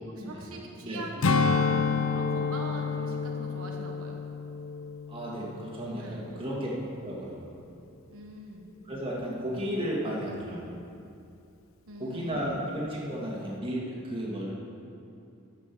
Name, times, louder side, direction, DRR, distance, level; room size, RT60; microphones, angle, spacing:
voice 1, 0.3-4.2 6.0-6.6 8.1-8.7 11.9-12.7, right 1 dB, 90° right, 1 dB, 1.2 m, -43 dB
Strum, 1.2-5.9 6.3-6.5, left 4 dB, 75° left, 0.6 m, -29 dB
voice 2, 5.1-6.7 7.0-7.4 8.8-10.7 12.0-14.5, equal, 25° right, -5 dB, 2.2 m, -33 dB
14.0 x 6.3 x 6.2 m, 2.6 s
head